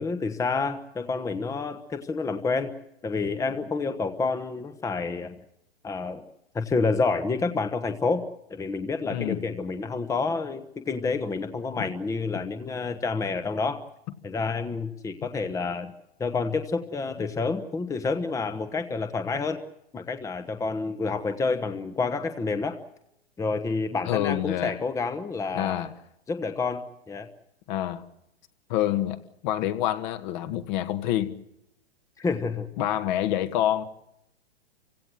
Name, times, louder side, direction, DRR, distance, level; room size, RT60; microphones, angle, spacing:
voice 1, 0.0-2.7 3.0-5.4 5.8-6.2 6.5-8.2 8.5-13.8 14.2-15.9 16.2-19.6 19.9-22.8 23.4-25.8 26.3-27.3 32.2-32.7, left 4 dB, 10° left, 1.1 m, -29 dB
voice 2, 9.1-9.4 11.8-11.9 24.1-24.8 25.5-25.9 27.7-28.0 28.7-29.2 29.4-31.3 32.8-33.8, left 12 dB, 45° left, 1.8 m, -27 dB
29.0 x 16.5 x 7.6 m
hypercardioid pair, 125°, 32 cm